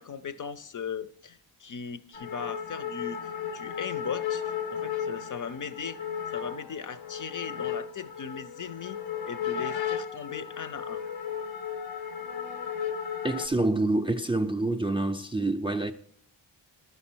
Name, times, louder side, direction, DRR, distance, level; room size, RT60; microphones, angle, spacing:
voice 1, 0.0-6.0 6.3-9.0 9.2-11.0, left 6 dB, 45° left, 0.5 m, -38 dB
sound 1, 2.1-13.5, left 8 dB, 80° left, 0.7 m, -35 dB
voice 2, 13.2-15.9, right 2 dB, 10° right, 0.4 m, -27 dB
10.5 x 4.3 x 6.1 m
cardioid pair, 75°, 45 cm